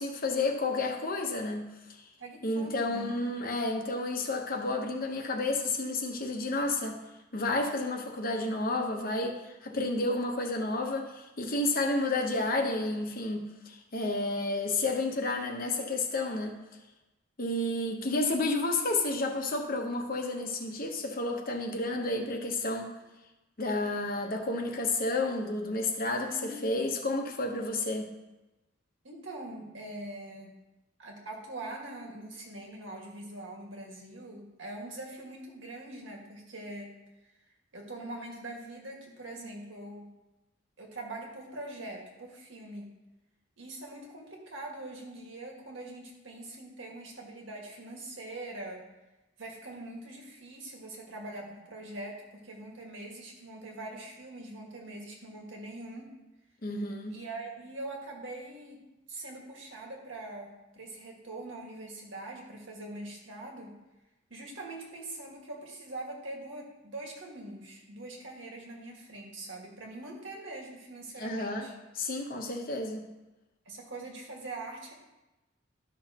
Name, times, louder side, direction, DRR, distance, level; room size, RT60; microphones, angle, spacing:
voice 1, 0.0-2.1 2.4-7.0 7.3-16.6 17.4-22.9 23.6-28.1 56.6-57.2 71.2-71.7 72.0-73.1, left 2 dB, 45° left, 3 dB, 1.0 m, -31 dB
voice 2, 2.2-3.1 26.3-26.8 29.0-30.5 31.0-36.9 37.7-40.1 40.8-42.9 43.6-48.9 49.4-56.1 57.1-63.7 64.3-71.7 73.7-74.9, right 2 dB, 75° right, 0 dB, 1.9 m, -43 dB
12.5 x 6.0 x 2.9 m, 1.0 s
head